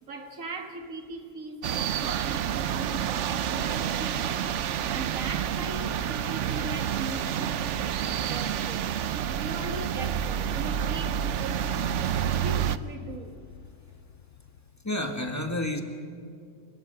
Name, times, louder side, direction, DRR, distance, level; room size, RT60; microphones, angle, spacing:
voice 1, 0.0-4.5 4.9-7.8 8.2-8.9 9.1-11.7 12.1-13.4, right 2 dB, 85° right, 5 dB, 2.2 m, -39 dB
sound 1, 1.6-12.8, right 9 dB, 65° right, 1.0 m, -29 dB
sound 2, 9.4-14.9, left 9 dB, 65° left, 1.0 m, -46 dB
voice 2, 14.8-15.8, left 1 dB, 15° left, 4 dB, 1.7 m, -30 dB
28.5 x 17.0 x 5.7 m, 2.4 s
omnidirectional pair, 1.4 m